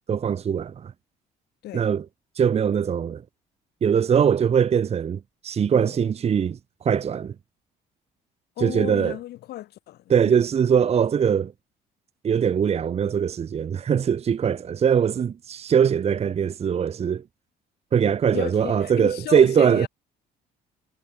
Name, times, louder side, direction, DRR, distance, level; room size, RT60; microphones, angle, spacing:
voice 1, 0.1-0.9 1.7-2.0 2.4-3.2 3.8-6.6 6.8-7.3 8.6-9.2 10.1-11.5 12.2-17.2 17.9-19.9, right 7 dB, 40° right, 1.2 m, -21 dB
voice 2, 8.6-10.4 18.3-19.9, left 14 dB, 75° left, 4.9 m, -35 dB
cardioid pair, 110°, 17 cm